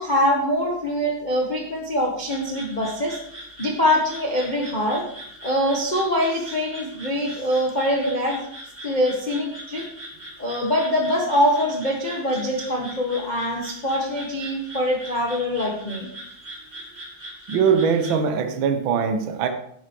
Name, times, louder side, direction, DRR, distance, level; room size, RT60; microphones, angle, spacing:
voice 1, 0.0-3.2 3.6-5.0 5.4-8.5 8.8-9.8 10.4-16.1, equal, 35° left, -1 dB, 0.7 m, -23 dB
sound 1, 2.3-18.1, right 1 dB, 20° right, 3.6 m, -41 dB
voice 2, 17.5-19.5, right 6 dB, 55° right, 6 dB, 1.5 m, -21 dB
10.5 x 8.7 x 4.6 m, 0.69 s
omnidirectional pair, 3.4 m